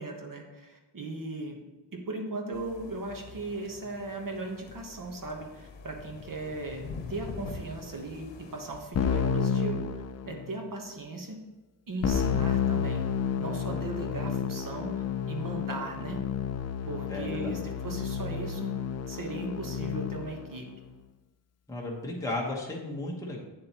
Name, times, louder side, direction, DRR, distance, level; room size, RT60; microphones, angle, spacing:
voice 1, 0.0-1.6 1.9-9.8 10.2-11.4 11.9-13.1 13.4-14.9 15.3-16.2 16.9-18.7 19.1-20.7, right 3 dB, 45° right, 2 dB, 1.2 m, -37 dB
sound 1, 2.5-8.8, left 4 dB, 80° left, 0.9 m, -45 dB
Keyboard (musical), 9.0-10.6 12.0-20.4, left 7 dB, 40° left, 0.4 m, -30 dB
voice 2, 17.1-17.6 21.7-23.4, left 2 dB, 5° left, -3 dB, 1.2 m, -34 dB
8.7 x 7.5 x 3.0 m, 1.2 s
wide cardioid pair, 160°, 44 cm